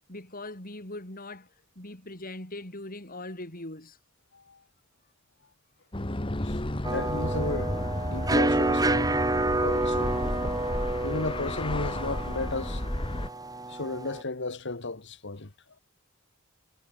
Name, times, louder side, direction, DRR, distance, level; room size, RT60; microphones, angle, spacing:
voice 1, 0.1-1.5 1.8-4.0, left 2 dB, 45° left, 5.8 m, -40 dB
sound 1, 5.9-13.3, left 1 dB, 25° left, 1.5 m, -32 dB
sound 2, 6.8-14.2, right 2 dB, 20° right, 2.1 m, -29 dB
voice 2, 6.9-9.2 9.6-10.2 11.0-12.8 13.7-15.5, left 3 dB, 60° left, 1.7 m, -34 dB
head